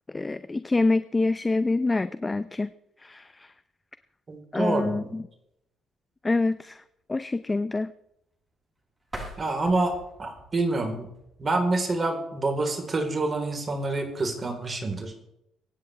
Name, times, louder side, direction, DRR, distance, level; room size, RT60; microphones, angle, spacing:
voice 1, 0.1-2.7 3.0-3.5 4.5-5.2 6.2-6.8 7.1-7.9, left 3 dB, 20° left, 13 dB, 0.7 m, -26 dB
voice 2, 4.3-5.2 9.4-9.9 10.2-11.1 11.4-15.2, right 2 dB, 35° right, 3 dB, 4.1 m, -27 dB
sound 1, 9.0-11.9, right 1 dB, 20° right, 7.1 m, -43 dB
23.5 x 10.0 x 3.5 m, 0.79 s
supercardioid pair, 65°, 0 cm